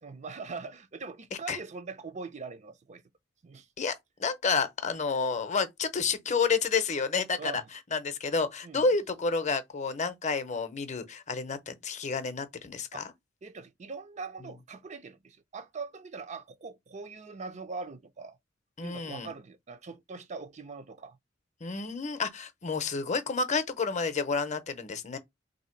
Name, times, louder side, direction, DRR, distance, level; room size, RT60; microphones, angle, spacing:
voice 1, 0.0-3.0 3.4-3.7 7.4-7.6 8.6-8.9 12.9-13.0 13.4-18.4 18.8-21.2, right 4 dB, 40° right, 0.5 m, -42 dB
voice 2, 4.2-7.6 7.9-13.0 18.8-19.3 21.6-25.2, left 4 dB, 40° left, 0.7 m, -30 dB
3.3 x 2.7 x 4.4 m
head